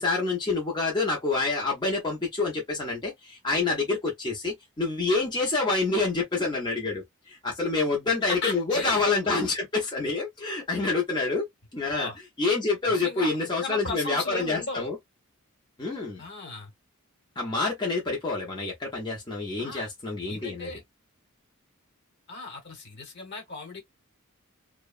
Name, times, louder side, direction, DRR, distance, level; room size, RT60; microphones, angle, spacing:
voice 1, 0.0-11.4 11.7-12.1 12.4-15.0 15.8-16.2 17.4-20.7, left 3 dB, 20° left, 0.6 m, -27 dB
voice 2, 8.2-9.5 11.9-12.2 12.9-14.9 16.2-16.7 19.6-19.9 20.3-20.8 22.3-23.8, left 3 dB, 55° left, 1.1 m, -36 dB
2.7 x 2.1 x 2.3 m
head